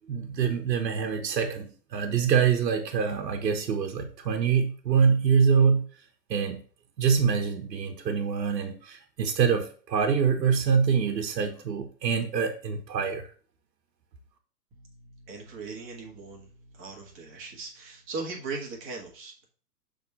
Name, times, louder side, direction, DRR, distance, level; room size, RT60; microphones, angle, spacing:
voice 1, 0.1-5.8 6.3-6.6 7.0-13.3, right 6 dB, 80° right, 4 dB, 1.3 m, -25 dB
voice 2, 14.7-19.5, right 4 dB, 25° right, 0 dB, 1.5 m, -39 dB
5.9 x 3.7 x 5.5 m, 0.42 s
hypercardioid pair, 130°, 49 cm